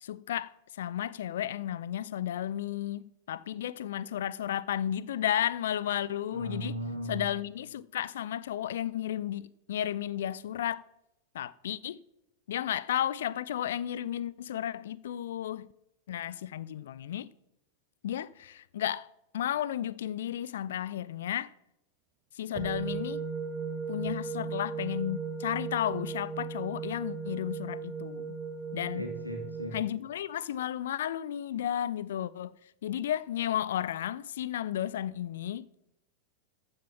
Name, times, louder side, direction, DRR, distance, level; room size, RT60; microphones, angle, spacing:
voice 1, 0.0-6.7 7.1-10.8 11.3-12.0 12.5-15.7 16.1-17.3 18.0-19.1 19.3-21.5 22.3-23.2 23.9-28.3 28.7-29.0 29.7-35.7, left 11 dB, 60° left, 0.4 m, -33 dB
voice 2, 6.3-7.3 28.9-29.8, right 1 dB, 90° right, 2.7 m, -37 dB
sound 1, 22.6-29.8, right 5 dB, 30° right, 1.4 m, -37 dB
14.5 x 6.5 x 6.0 m
figure-of-eight pair, 90°, 0 cm